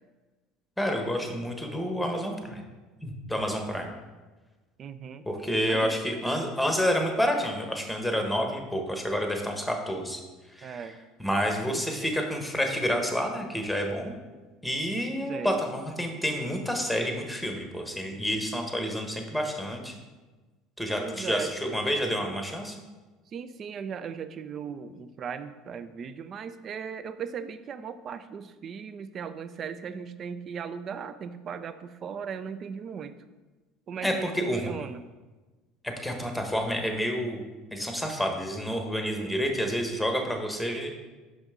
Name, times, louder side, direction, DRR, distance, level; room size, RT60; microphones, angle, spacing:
voice 1, 0.8-2.6 3.0-3.9 5.3-10.2 10.5-10.9 11.2-14.1 14.6-19.9 20.8-22.8 34.0-34.7 35.8-37.4 37.7-40.9, equal, 5° left, 3 dB, 1.1 m, -29 dB
voice 2, 4.8-5.3 5.7-6.0 10.6-11.0 11.7-12.1 15.3-15.6 21.0-21.5 23.3-33.2 33.9-35.0, right 7 dB, 45° right, 12 dB, 0.4 m, -38 dB
6.1 x 5.2 x 3.6 m, 1.2 s
hypercardioid pair, 80°, 0 cm